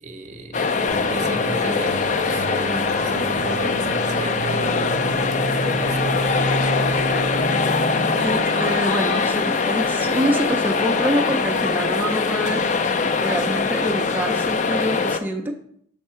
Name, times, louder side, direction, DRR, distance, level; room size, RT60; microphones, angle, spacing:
voice 1, 0.0-4.8 5.6-7.5, right 2 dB, 40° right, 5 dB, 0.7 m, -35 dB
sound 1, 0.5-15.2, left 4 dB, 40° left, 0.4 m, -22 dB
sound 2, 0.9-8.9, right 1 dB, 80° right, 0.5 m, -29 dB
voice 2, 8.2-12.7 13.2-15.6, equal, 10° right, 0 dB, 0.5 m, -25 dB
6.5 x 3.5 x 5.6 m, 0.64 s
head